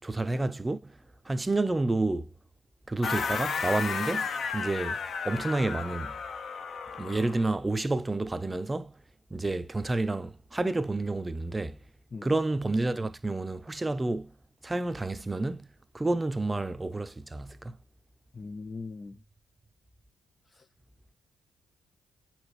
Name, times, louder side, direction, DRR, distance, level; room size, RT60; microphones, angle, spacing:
voice 1, 0.0-0.9 1.3-2.3 2.9-6.1 7.0-8.9 9.3-11.8 12.2-14.3 14.6-15.6 15.9-17.8, right 2 dB, 15° right, 0.7 m, -30 dB
sound 1, 3.0-7.4, left 5 dB, 55° left, 0.9 m, -33 dB
voice 2, 18.3-19.2 20.5-20.7, left 4 dB, 30° left, 0.4 m, -40 dB
8.9 x 4.5 x 3.2 m
cardioid pair, 90°, 0 cm